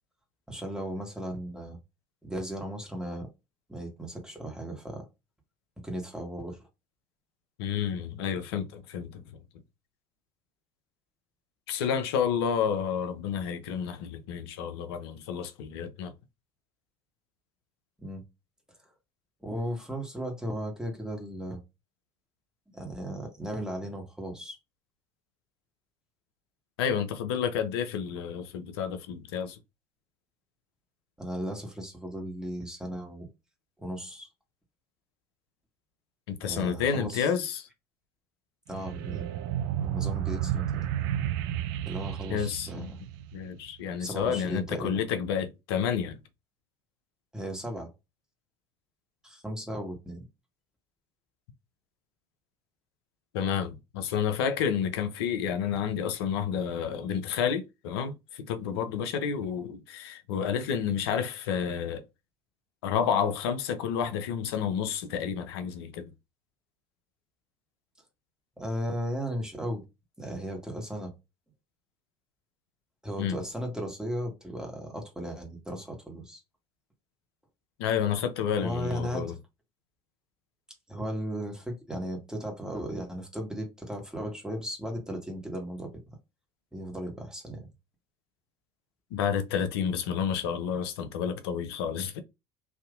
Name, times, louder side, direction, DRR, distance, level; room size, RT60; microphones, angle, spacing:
voice 1, 0.5-1.8 2.2-3.3 3.7-5.1 5.8-6.6 18.0-18.2 19.4-21.6 22.7-24.6 31.2-33.3 33.8-34.3 36.4-37.3 38.7-39.3 39.8-40.9 41.8-43.0 44.0-45.0 47.3-47.9 49.2-50.2 68.6-69.8 70.2-71.1 73.0-76.4 78.6-79.4 80.9-86.2 86.7-87.7, equal, 5° right, 1.5 m, -36 dB
voice 2, 7.6-9.2 11.7-16.1 26.8-29.6 36.3-37.7 42.3-42.9 43.3-46.2 53.3-62.0 62.8-66.1 73.2-73.4 77.8-79.3 89.1-92.2, left 7 dB, 75° left, 0.6 m, -30 dB
sound 1, 38.7-43.7, right 11 dB, 70° right, 0.4 m, -32 dB
3.5 x 2.7 x 2.5 m
hypercardioid pair, 70°, 13 cm